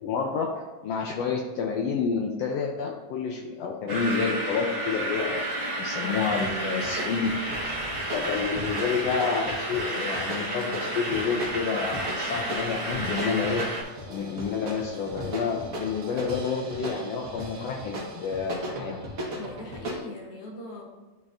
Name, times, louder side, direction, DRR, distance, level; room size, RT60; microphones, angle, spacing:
voice 1, 0.0-5.4 5.8-7.6 8.1-13.6 14.1-19.0, left 5 dB, 80° left, 1 dB, 1.5 m, -29 dB
sound 1, 3.9-13.8, right 1 dB, 75° right, 0.5 m, -31 dB
voice 2, 6.0-6.4 19.3-20.9, left 1 dB, 65° left, -1 dB, 1.6 m, -41 dB
sound 2, 6.3-20.0, equal, 45° right, 1.1 m, -38 dB
11.5 x 4.1 x 2.5 m, 1.2 s
omnidirectional pair, 3.4 m